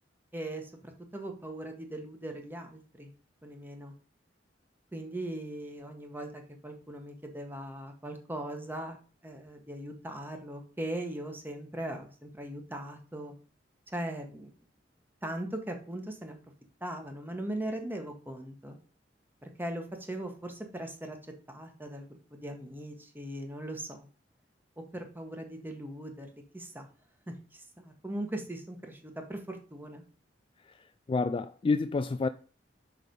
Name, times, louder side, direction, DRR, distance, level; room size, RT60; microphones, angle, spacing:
voice 1, 0.3-3.1 3.4-3.9 4.9-9.0 9.2-13.3 13.9-14.5 15.2-16.4 16.8-18.8 19.4-21.2 21.5-24.1 24.9-26.9 27.3-30.0, right 1 dB, 10° right, 1.3 m, -39 dB
voice 2, 31.1-32.3, left 4 dB, 30° left, 0.3 m, -28 dB
5.9 x 4.9 x 5.3 m
head